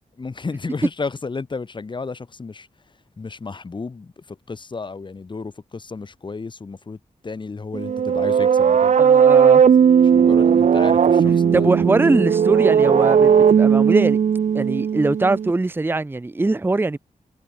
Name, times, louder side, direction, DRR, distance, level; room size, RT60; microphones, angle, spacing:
voice 1, 0.2-2.7 3.2-7.0 7.2-9.0 9.6-9.7 10.0-11.7, left 4 dB, 35° left, 1.6 m, -32 dB
sound 1, 7.7-15.5, right 7 dB, 60° right, 0.7 m, -16 dB
voice 2, 9.0-9.6 11.3-14.2 14.5-17.0, right 2 dB, 15° right, 0.6 m, -21 dB
wide cardioid pair, 120°, 14 cm